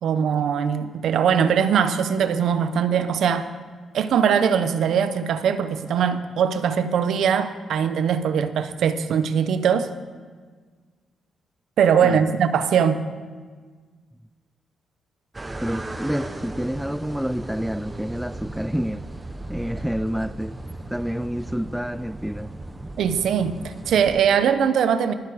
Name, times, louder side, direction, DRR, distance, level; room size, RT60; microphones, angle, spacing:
voice 1, 0.0-3.5 3.9-9.9 11.8-13.0 23.0-23.6 23.9-25.1, right 7 dB, 75° right, 0.8 m, -21 dB
voice 2, 12.0-12.4 15.6-19.1 19.5-20.6 20.9-22.5, equal, ahead, 0.3 m, -28 dB
sound 1, 15.3-24.3, right 2 dB, 20° right, 0.8 m, -36 dB
20.5 x 6.8 x 4.9 m
cardioid pair, 105°, 0 cm